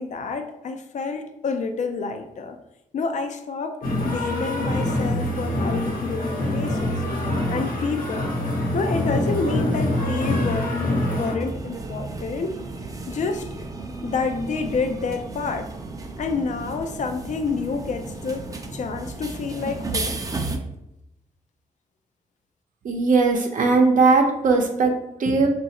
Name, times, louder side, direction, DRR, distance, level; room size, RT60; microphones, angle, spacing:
voice 1, 0.0-2.6 2.9-7.0 7.5-8.3 8.7-12.5 13.1-13.5 14.0-15.7 16.2-20.2, left 4 dB, 60° left, 7 dB, 0.4 m, -28 dB
sound 1, 3.8-11.3, left 1 dB, 90° left, 1.1 m, -25 dB
sound 2, 11.4-20.6, right 3 dB, 25° right, 0.5 m, -34 dB
voice 2, 22.8-25.5, right 3 dB, 70° right, 3 dB, 0.7 m, -19 dB
4.7 x 2.5 x 2.9 m, 0.88 s
cardioid pair, 80°, 14 cm